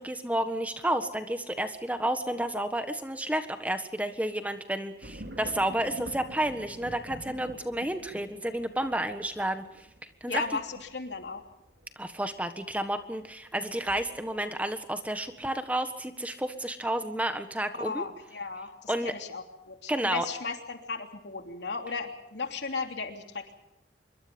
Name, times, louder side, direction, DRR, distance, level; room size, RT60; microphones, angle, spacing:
voice 1, 0.0-9.6 10.2-10.4 12.0-18.0 18.9-19.1 19.9-20.2, right 1 dB, 10° right, 8 dB, 1.5 m, -31 dB
sound 1, 5.0-14.6 15.1-15.6, right 1 dB, 80° right, 2.7 m, -46 dB
voice 2, 10.3-11.4 17.8-23.5, left 4 dB, 85° left, 4 dB, 3.1 m, -36 dB
26.0 x 23.0 x 5.4 m, 0.83 s
head